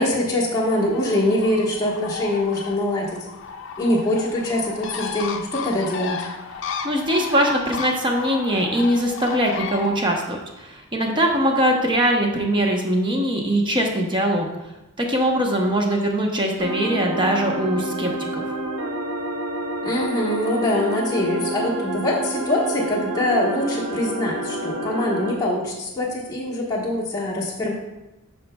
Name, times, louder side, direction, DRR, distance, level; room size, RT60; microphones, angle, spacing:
voice 1, 0.0-3.3 3.8-6.2 19.8-27.7, left 1 dB, 15° left, -6 dB, 1.2 m, -23 dB
Bird, 0.7-10.0, left 6 dB, 55° left, 0.5 m, -33 dB
voice 2, 6.8-14.5 15.0-18.5, right 1 dB, 20° right, 1 dB, 0.8 m, -21 dB
sound 1, 16.6-25.3, right 1 dB, 75° right, 0.8 m, -28 dB
9.4 x 5.7 x 2.2 m, 1.0 s
head